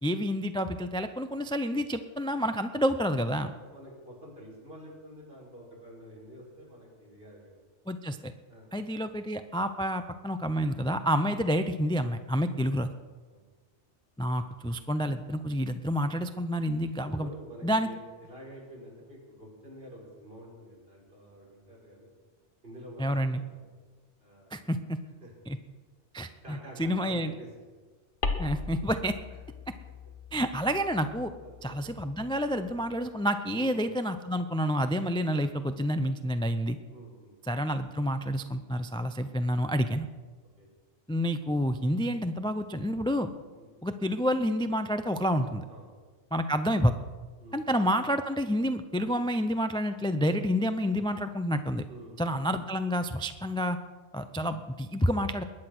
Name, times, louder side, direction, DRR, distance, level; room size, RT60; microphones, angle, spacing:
voice 1, 0.0-3.5 7.9-8.3 8.7-12.9 14.2-17.3 17.6-17.9 23.0-23.4 24.5-25.0 25.5-25.6 26.1-27.3 28.4-29.1 30.3-31.3 31.6-36.8 37.5-40.1 41.1-43.3 43.8-45.6 46.3-46.9 47.5-51.8 52.2-53.8 54.1-55.4, equal, 5° left, 9 dB, 0.4 m, -29 dB
voice 2, 3.3-7.6 8.5-8.7 11.2-11.4 13.3-13.4 17.0-22.1 22.6-23.7 24.2-24.6 25.2-25.3 26.4-27.5 29.3-29.4 31.4-31.7 33.5-33.7 36.9-37.4 40.6-40.7 43.5-43.7 45.7-45.9 47.4-47.6 51.9-52.4, equal, 55° right, -3 dB, 5.8 m, -48 dB
sound 1, 28.2-33.1, left 3 dB, 45° left, 1.5 m, -39 dB
21.5 x 9.9 x 6.1 m, 1.4 s
omnidirectional pair, 1.2 m